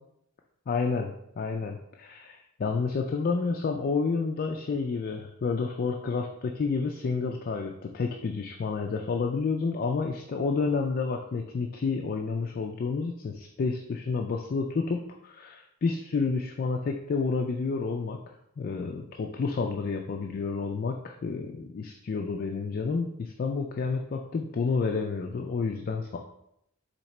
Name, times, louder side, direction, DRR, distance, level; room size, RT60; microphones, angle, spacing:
voice 1, 0.7-18.2 18.6-26.2, left 4 dB, 45° left, 3 dB, 0.4 m, -30 dB
4.5 x 2.8 x 4.1 m, 0.77 s
head